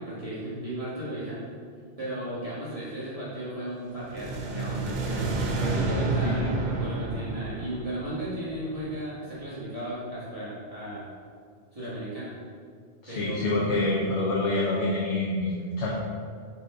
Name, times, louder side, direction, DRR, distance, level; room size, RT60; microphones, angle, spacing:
voice 1, 0.0-1.5 2.0-11.1 11.7-12.4 13.1-13.7, right 1 dB, 30° right, -11 dB, 1.8 m, -35 dB
sound 1, 3.9-9.1, right 2 dB, 45° right, 0.7 m, -30 dB
voice 2, 13.0-15.9, left 2 dB, 75° left, -4 dB, 1.2 m, -26 dB
6.8 x 4.0 x 3.8 m, 2.1 s
omnidirectional pair, 1.2 m